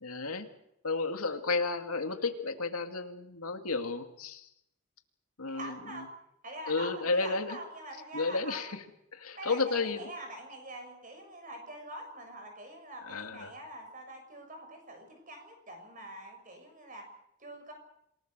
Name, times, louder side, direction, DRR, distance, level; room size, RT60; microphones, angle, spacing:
voice 1, 0.0-0.5 0.8-4.5 5.4-6.0 6.7-7.6 8.1-8.8 9.1-10.1 13.1-13.5, left 3 dB, 85° left, 6 dB, 2.2 m, -32 dB
voice 2, 5.5-6.1 6.4-8.6 9.3-17.0 17.4-17.7, right 1 dB, 35° right, 5 dB, 6.7 m, -45 dB
27.0 x 19.0 x 6.7 m, 0.79 s
head